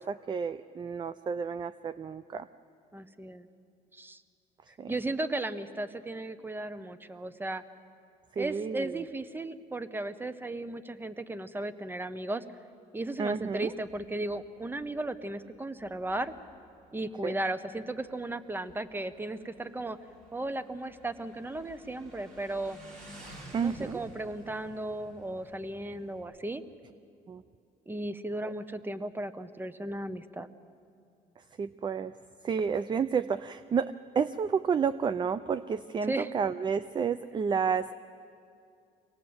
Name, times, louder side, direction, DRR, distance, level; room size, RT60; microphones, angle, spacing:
voice 1, 0.0-2.5 4.8-4.9 8.3-9.0 13.2-13.7 17.2-17.3 23.5-24.0 27.3-27.4 31.4-32.2 32.4-37.9, right 6 dB, 25° right, 15 dB, 0.4 m, -31 dB
voice 2, 2.9-3.5 3.9-4.2 4.9-7.6 8.4-12.4 12.9-16.3 16.9-20.0 20.3-22.8 23.6-26.6 27.9-30.5 36.1-36.3, right 2 dB, 10° right, 13 dB, 0.9 m, -35 dB
Motorcycle, 13.5-26.2, equal, 50° right, 5.7 m, -54 dB
24.5 x 18.0 x 7.8 m, 2.5 s
cardioid pair, 110°, 17 cm